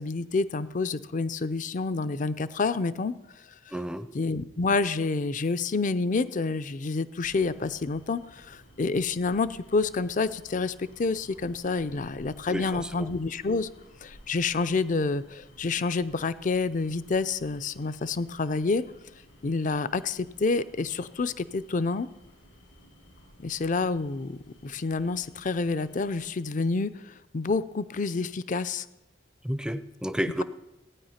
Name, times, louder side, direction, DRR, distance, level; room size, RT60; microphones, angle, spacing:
voice 1, 0.0-3.1 4.1-13.7 14.0-18.8 19.4-22.1 23.4-28.9, left 3 dB, 45° left, 15 dB, 0.5 m, -28 dB
voice 2, 3.7-4.1 12.5-13.1 29.4-30.4, equal, 5° right, 12 dB, 0.5 m, -31 dB
sound 1, 7.2-26.2, equal, 90° left, 4.1 m, -55 dB
15.5 x 9.4 x 5.7 m, 0.94 s
head